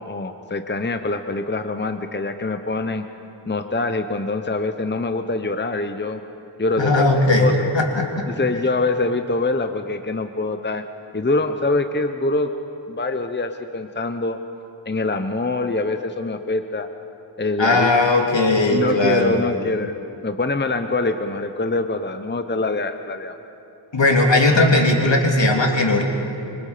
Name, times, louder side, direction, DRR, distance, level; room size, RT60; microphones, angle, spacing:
voice 1, 0.0-3.0 3.5-6.2 6.6-7.1 7.4-7.7 8.3-10.8 11.1-12.5 12.9-14.4 14.8-16.9 17.4-17.9 18.7-19.9 20.2-23.3, left 3 dB, 25° left, 7 dB, 0.9 m, -24 dB
voice 2, 6.8-8.1 17.6-19.4 23.9-26.0, left 2 dB, 70° left, 1 dB, 2.9 m, -18 dB
25.5 x 25.0 x 5.1 m, 2.8 s
wide cardioid pair, 55°, 45 cm